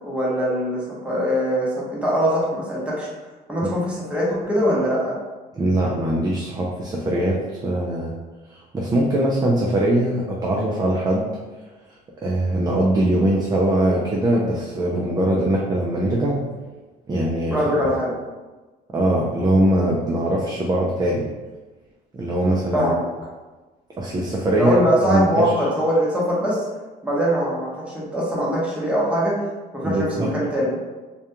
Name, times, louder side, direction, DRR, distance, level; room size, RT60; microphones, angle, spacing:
voice 1, 0.0-3.1 3.5-5.1 17.5-18.1 22.7-23.0 24.5-26.6 27.0-29.4 29.7-30.8, equal, 5° right, -6 dB, 0.8 m, -22 dB
voice 2, 5.6-8.1 8.5-11.3 12.2-16.4 17.1-17.5 18.9-21.3 22.1-22.9 24.0-24.8 25.1-25.6 29.8-30.3, right 1 dB, 25° right, -3 dB, 0.4 m, -21 dB
2.3 x 2.2 x 2.8 m, 1.2 s
cardioid pair, 110°, 17 cm